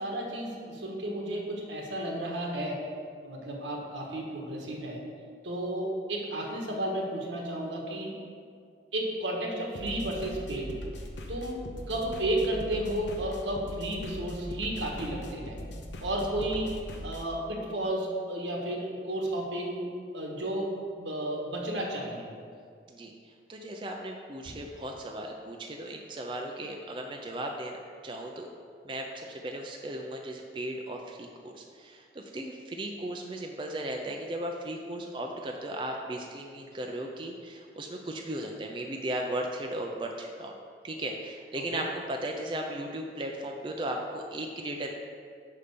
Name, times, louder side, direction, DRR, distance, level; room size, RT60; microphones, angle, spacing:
voice 1, 0.0-2.9 3.2-5.0 5.4-8.1 8.9-10.7 11.3-11.6 11.9-15.6 16.0-16.7 17.0-22.2 41.7-41.8, right 1 dB, 90° right, -1 dB, 1.4 m, -32 dB
sound 1, 9.7-17.2, equal, 80° left, 0.8 m, -40 dB
voice 2, 23.5-28.5 28.8-40.5 40.8-44.9, right 1 dB, 25° right, 2 dB, 0.4 m, -36 dB
5.6 x 5.1 x 6.6 m, 2.2 s
head